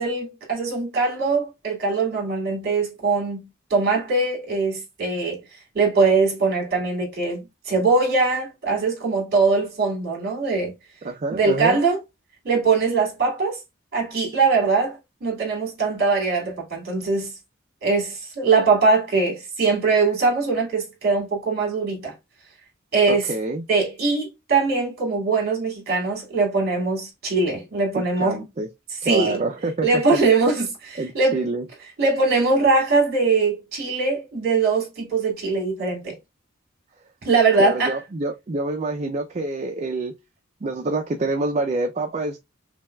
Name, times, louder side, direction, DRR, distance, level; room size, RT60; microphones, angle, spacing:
voice 1, 0.0-5.4 5.7-10.7 11.3-12.0 12.4-13.6 13.9-17.3 17.8-22.1 22.9-23.3 23.7-28.4 29.0-29.4 29.8-31.4 32.0-36.1 37.2-38.0, right 4 dB, 50° right, 2.4 m, -21 dB
voice 2, 11.0-11.8 23.1-23.6 27.9-28.7 29.0-30.2 31.0-31.7 37.6-40.1 40.6-42.4, right 2 dB, 35° right, 0.4 m, -27 dB
5.8 x 2.3 x 2.2 m
head